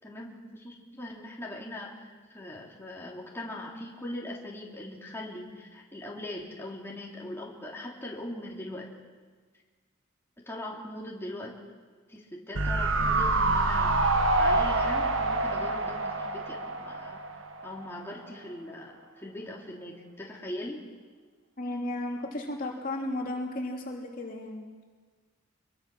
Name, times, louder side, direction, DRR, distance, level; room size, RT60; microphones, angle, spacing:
voice 1, 0.0-8.9 10.4-11.5 12.1-17.2 17.6-20.8, left 1 dB, 10° left, -3 dB, 3.3 m, -40 dB
sound 1, 12.5-17.8 18.1-18.2, right 2 dB, 80° right, 1.5 m, -26 dB
voice 2, 21.6-24.6, left 1 dB, 45° left, 0 dB, 3.1 m, -34 dB
25.5 x 22.0 x 6.3 m, 1.5 s
head